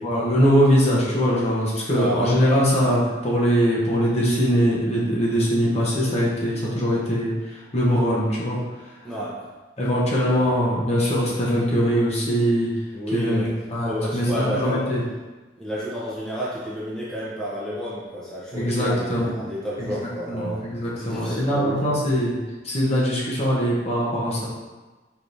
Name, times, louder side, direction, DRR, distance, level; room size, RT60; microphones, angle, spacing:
voice 1, 0.0-8.6 9.8-12.7 13.1-15.0 18.5-19.4 19.8-22.4 22.6-24.5, equal, 35° left, -5 dB, 0.9 m, -22 dB
voice 2, 1.9-2.3 9.0-9.3 10.3-10.5 12.9-13.5 13.8-14.8 15.6-21.8, equal, 5° left, -8 dB, 0.7 m, -30 dB
4.6 x 3.4 x 2.7 m, 1.2 s
head